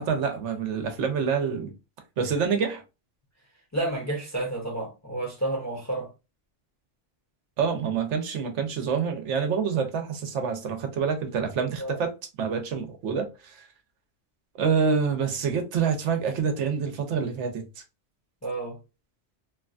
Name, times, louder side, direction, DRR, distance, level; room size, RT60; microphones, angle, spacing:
voice 1, 0.0-1.7 2.2-2.8 7.6-12.1 12.4-13.6 14.6-17.6, right 6 dB, 75° right, 1.0 m, -27 dB
voice 2, 3.7-6.1 11.8-12.0 18.4-18.8, right 2 dB, 20° left, 0.6 m, -30 dB
2.9 x 2.2 x 2.4 m
omnidirectional pair, 1.2 m